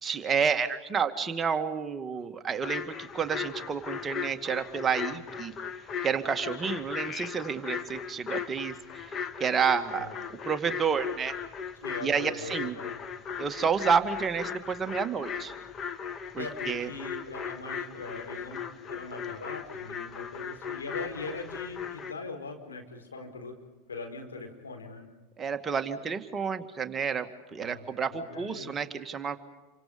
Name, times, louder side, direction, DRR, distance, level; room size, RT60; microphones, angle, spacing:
voice 1, 0.0-5.5 6.0-10.1 10.5-11.3 12.0-12.8 13.4-15.5 16.3-16.9 25.4-29.4, right 6 dB, 25° right, 7 dB, 2.1 m, -30 dB
sound 1, 2.6-22.1, left 7 dB, 30° left, 1.7 m, -38 dB
voice 2, 11.8-13.0 16.4-18.6 18.9-23.6 23.9-25.1 27.6-28.7, left 3 dB, 85° left, 4 dB, 4.7 m, -41 dB
29.0 x 25.5 x 5.3 m, 1.1 s
hypercardioid pair, 90°, 0 cm